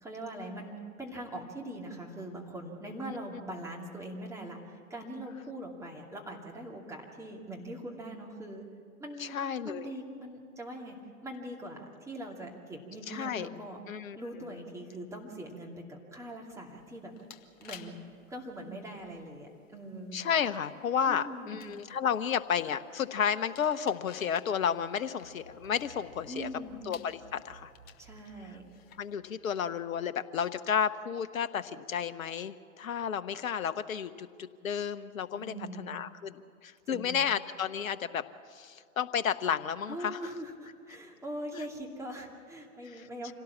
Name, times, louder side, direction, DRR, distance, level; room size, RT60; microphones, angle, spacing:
voice 1, 0.0-8.6 9.0-9.4 9.6-11.0 11.2-13.8 14.2-17.1 17.6-18.0 18.3-20.2 21.1-21.6 26.3-26.8 28.0-28.6 35.3-35.9 36.9-37.2 39.9-43.3, right 1 dB, 5° right, -1 dB, 2.5 m, -42 dB
voice 2, 9.2-9.9 13.1-13.5 13.9-14.2 14.5-14.6 20.1-26.5 26.9-27.7 29.0-38.2 38.5-40.3 41.5-41.7 42.9-43.1, left 8 dB, 65° left, 11 dB, 1.0 m, -32 dB
sound 1, 16.7-29.1, left 9 dB, 20° left, 0.9 m, -57 dB
sound 2, 25.2-29.9, right 5 dB, 35° right, 2.8 m, -58 dB
26.0 x 17.5 x 7.3 m, 2.4 s
figure-of-eight pair, 120°, 44 cm